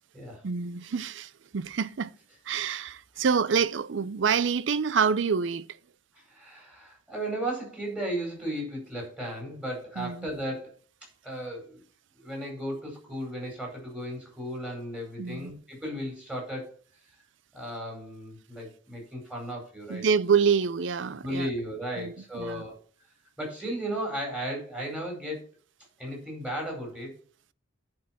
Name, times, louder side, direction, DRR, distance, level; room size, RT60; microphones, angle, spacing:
voice 1, 0.4-2.1 2.5-5.7 10.0-10.3 15.2-15.5 19.9-21.5 22.0-22.6, right 6 dB, 65° right, 0.5 m, -27 dB
voice 2, 6.1-10.7 11.2-11.8 12.2-16.7 17.5-20.0 21.2-22.8 23.4-25.4 26.0-27.1, right 1 dB, 5° right, 4.7 m, -35 dB
10.5 x 5.3 x 5.9 m
head